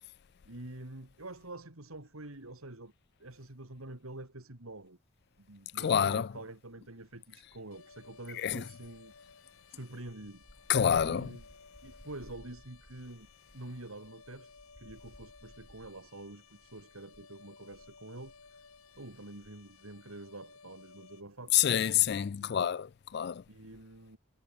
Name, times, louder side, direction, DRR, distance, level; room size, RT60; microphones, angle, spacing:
voice 1, 0.4-2.9 3.2-5.0 5.4-9.1 9.7-10.5 11.0-11.5 11.8-13.3 13.5-18.3 19.0-22.6 23.5-24.2, right 2 dB, 85° right, 2.9 m, -47 dB
sound 1, 5.4-6.2 6.5-20.0 20.3-20.5, equal, 30° left, 7.0 m, -61 dB
voice 2, 5.8-6.3 8.4-8.6 10.7-11.3 21.5-23.4, left 9 dB, 50° left, 0.3 m, -27 dB
sound 2, 7.7-21.2, left 5 dB, 85° left, 3.1 m, -58 dB
head